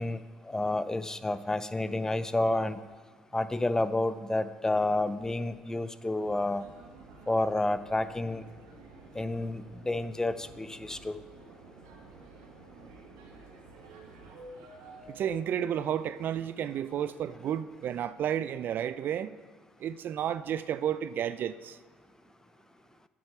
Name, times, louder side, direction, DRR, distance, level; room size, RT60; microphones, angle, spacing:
voice 1, 0.0-2.8 3.3-6.6 7.3-8.4 9.1-11.2, left 2 dB, 15° left, 0.5 m, -30 dB
sound 1, 6.2-15.4, right 2 dB, 85° right, 1.3 m, -51 dB
voice 2, 15.1-19.4 19.8-21.8, right 9 dB, 60° right, 0.4 m, -32 dB
8.6 x 6.6 x 5.9 m
hypercardioid pair, 65°, 4 cm